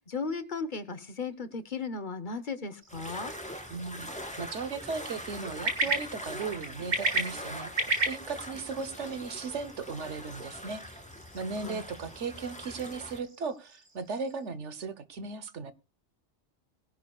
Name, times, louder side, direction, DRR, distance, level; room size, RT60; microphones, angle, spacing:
voice 1, 0.1-3.3 11.6-11.8, left 4 dB, 45° left, 12 dB, 1.2 m, -36 dB
sound 1, 2.8-14.5, right 2 dB, 70° right, 2.7 m, -37 dB
sound 2, 2.9-13.2, equal, 5° left, 2.6 m, -42 dB
voice 2, 3.7-4.1 4.4-7.7 8.0-11.0 11.3-15.7, right 5 dB, 85° right, 13 dB, 1.4 m, -37 dB
21.5 x 11.0 x 2.4 m, 0.29 s
omnidirectional pair, 1.2 m